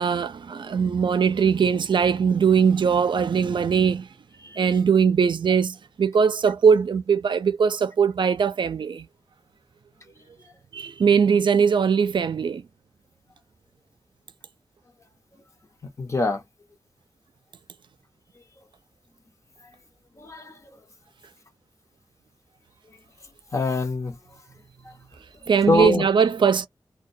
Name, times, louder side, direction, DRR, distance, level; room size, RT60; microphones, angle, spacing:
voice 1, 0.0-4.1 4.6-9.1 10.7-12.6 25.5-26.7, right 6 dB, 65° right, 0.4 m, -20 dB
voice 2, 4.4-4.7 16.0-16.4 20.2-20.6 23.5-24.2 24.8-24.9 25.7-26.0, left 3 dB, 35° left, 0.7 m, -24 dB
2.2 x 2.2 x 2.6 m
wide cardioid pair, 105°, 9 cm